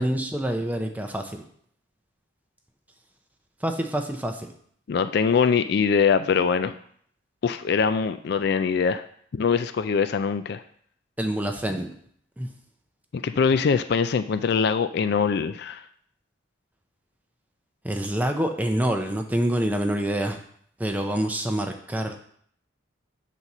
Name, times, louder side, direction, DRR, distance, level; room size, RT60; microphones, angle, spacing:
voice 1, 0.0-1.4 3.6-4.5 11.2-11.9 12.4-12.5 17.8-20.4 20.8-22.1, right 1 dB, 10° right, 4 dB, 0.6 m, -26 dB
voice 2, 4.9-6.7 7.4-9.0 9.3-10.6 13.1-15.8, left 6 dB, 55° left, 10 dB, 0.3 m, -23 dB
8.0 x 4.1 x 5.9 m, 0.63 s
head